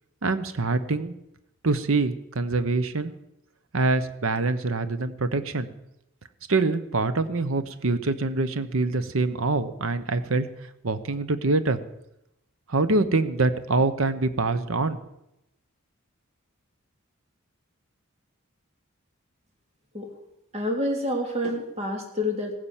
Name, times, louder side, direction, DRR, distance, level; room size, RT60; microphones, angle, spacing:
voice 1, 0.2-1.1 1.6-3.1 3.7-5.7 6.5-10.5 10.8-11.8 12.7-15.0, right 3 dB, 65° right, 12 dB, 0.9 m, -25 dB
voice 2, 20.5-22.5, left 1 dB, 30° right, 2 dB, 3.1 m, -28 dB
17.0 x 9.8 x 7.3 m, 0.85 s
head